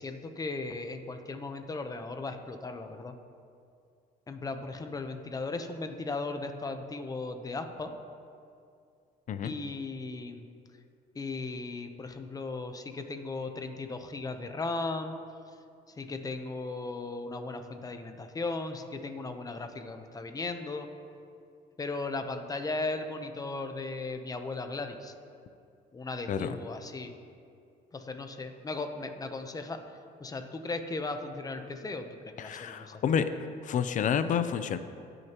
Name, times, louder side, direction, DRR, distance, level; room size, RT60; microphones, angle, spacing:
voice 1, 0.0-3.1 4.3-7.9 9.4-10.5 11.1-15.1 15.9-20.9 21.8-25.1 25.9-27.1 27.9-29.8 30.2-32.9, left 3 dB, 20° left, 7 dB, 0.8 m, -37 dB
voice 2, 32.4-33.3 33.6-34.8, left 8 dB, 50° left, 11 dB, 0.5 m, -29 dB
19.0 x 6.6 x 3.0 m, 2.4 s
cardioid pair, 110°, 17 cm